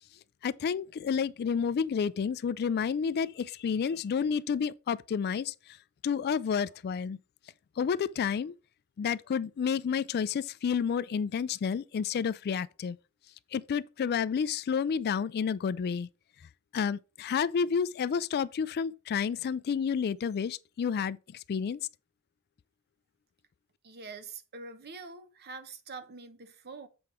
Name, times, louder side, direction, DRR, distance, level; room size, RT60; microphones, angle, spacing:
voice 1, 0.4-5.8 6.0-7.2 7.8-8.5 9.0-13.0 13.5-16.1 16.7-21.8, left 6 dB, 45° left, 0.3 m, -30 dB
voice 2, 23.8-26.9, right 4 dB, 45° right, 0.9 m, -45 dB
7.8 x 4.8 x 4.3 m
head